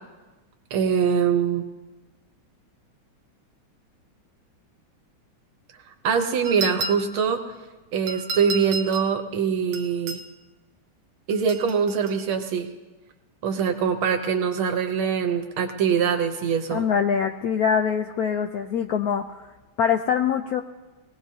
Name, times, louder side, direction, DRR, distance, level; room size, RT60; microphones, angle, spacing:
voice 1, 0.7-1.7 6.0-7.4 7.9-10.2 11.3-12.7 13.4-16.9, right 6 dB, 85° right, 5 dB, 1.8 m, -23 dB
sound 1, 6.4-7.3 8.1-9.1 9.7-10.3 11.3-12.2, right 3 dB, 60° right, 1.2 m, -32 dB
voice 2, 16.7-19.5 19.8-20.6, left 7 dB, 85° left, 7 dB, 0.8 m, -24 dB
21.5 x 17.5 x 2.8 m, 1.2 s
omnidirectional pair, 2.2 m